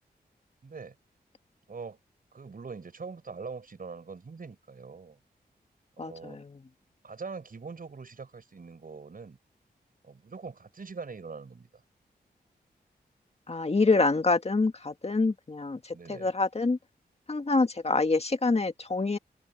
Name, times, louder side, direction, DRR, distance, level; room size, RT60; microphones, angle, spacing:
voice 1, 0.6-1.0 1.7-2.0 2.3-5.2 6.0-6.4 7.0-9.4 10.0-11.7 15.9-16.3, right 4 dB, 60° right, 5.6 m, -43 dB
voice 2, 6.0-6.6 13.5-16.8 17.3-19.2, left 3 dB, 40° left, 1.9 m, -26 dB
open air
cardioid pair, 60°, 17 cm